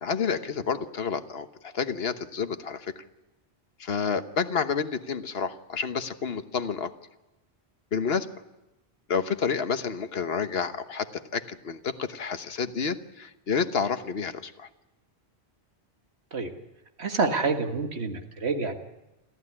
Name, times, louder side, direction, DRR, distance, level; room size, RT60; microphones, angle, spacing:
voice 1, 0.0-3.0 3.8-6.9 7.9-8.3 9.1-14.7, left 6 dB, 65° left, 10 dB, 1.4 m, -29 dB
voice 2, 17.0-18.8, right 4 dB, 75° right, 5 dB, 2.0 m, -27 dB
27.0 x 14.5 x 9.8 m, 1.0 s
omnidirectional pair, 1.1 m